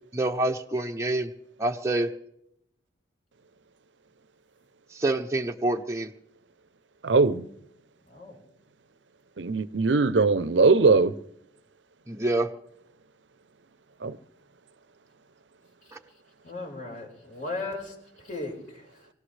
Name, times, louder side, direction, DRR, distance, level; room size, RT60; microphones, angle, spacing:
voice 1, 0.1-1.3 1.6-2.1 4.9-6.1 12.1-12.5 15.9-16.0, right 2 dB, 15° right, 0.8 m, -27 dB
voice 2, 7.0-7.5 9.4-11.1 14.0-14.2, right 4 dB, 75° right, 0.7 m, -21 dB
voice 3, 7.9-8.4 15.8-19.1, left 2 dB, 45° left, 4.8 m, -38 dB
24.5 x 17.0 x 3.3 m
head